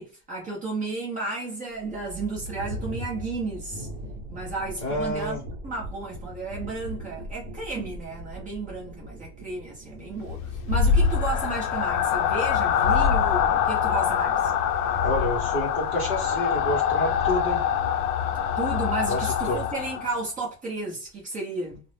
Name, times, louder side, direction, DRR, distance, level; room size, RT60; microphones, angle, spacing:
voice 1, 0.0-3.9 4.3-5.4 5.6-14.5 18.6-21.8, right 3 dB, 15° right, 0.6 m, -33 dB
sound 1, 1.7-19.7, equal, 50° right, 0.8 m, -42 dB
voice 2, 4.8-5.4 15.0-17.7 19.1-19.6, left 1 dB, 25° left, 0.6 m, -29 dB
sound 2, 10.2-20.2, left 7 dB, 75° left, 0.6 m, -24 dB
2.5 x 2.0 x 3.1 m
cardioid pair, 165°, 47 cm